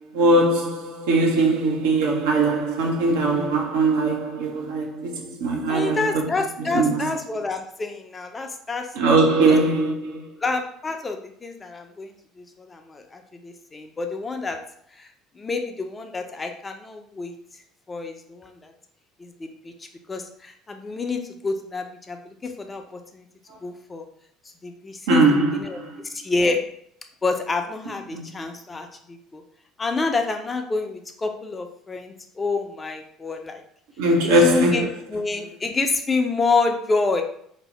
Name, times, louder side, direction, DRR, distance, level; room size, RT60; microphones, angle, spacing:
voice 1, 0.1-6.0 6.7-7.1 9.0-10.3 25.1-26.0 28.1-28.4 34.0-34.9, right 2 dB, 65° right, 0.5 m, -20 dB
voice 2, 5.7-8.9 9.5-9.6 10.4-14.6 14.9-15.1 15.4-17.3 17.9-18.7 19.2-19.7 20.1-23.3 23.6-24.0 24.6-25.2 25.5-25.8 26.1-26.6 27.2-29.4 29.8-33.6 34.2-37.2, left 3 dB, 20° left, 0.4 m, -28 dB
2.7 x 2.0 x 3.1 m
figure-of-eight pair, 60°, 0 cm